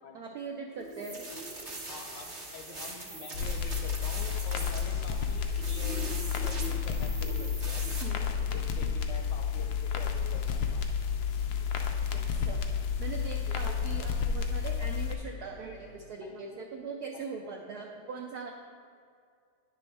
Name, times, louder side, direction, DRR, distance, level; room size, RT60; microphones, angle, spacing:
voice 1, 0.1-1.3 8.0-8.9 11.6-11.7 12.1-12.6 13.0-18.5, right 4 dB, 80° right, 1 dB, 0.8 m, -41 dB
sound 1, 0.7-16.1, equal, 25° left, 0.7 m, -51 dB
sound 2, 0.9-8.0, right 2 dB, 35° right, 0.8 m, -42 dB
voice 2, 1.9-7.8 8.5-10.8 16.2-16.6 17.1-17.3, left 4 dB, 70° left, 2 dB, 1.1 m, -47 dB
sound 3, 3.3-15.2, left 6 dB, 85° left, 0.8 m, -31 dB
9.9 x 6.2 x 3.2 m, 2.3 s
omnidirectional pair, 2.3 m